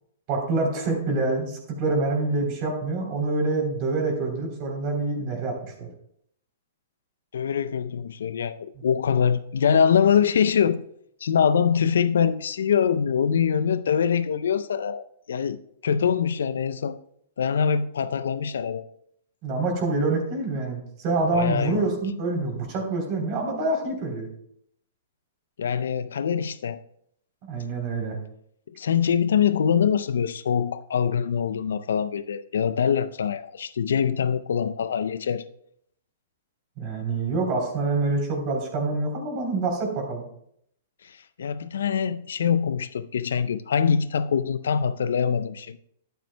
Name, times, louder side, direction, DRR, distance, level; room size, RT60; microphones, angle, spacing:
voice 1, 0.3-5.9 19.4-24.3 27.5-28.2 36.8-40.2, right 3 dB, 45° right, 3.3 m, -26 dB
voice 2, 7.3-10.8 11.2-15.6 15.8-17.0 17.4-18.9 21.3-21.8 25.6-26.8 28.7-35.4 41.0-45.8, left 7 dB, 75° left, 0.5 m, -24 dB
12.0 x 9.1 x 2.2 m
hypercardioid pair, 120°, 0 cm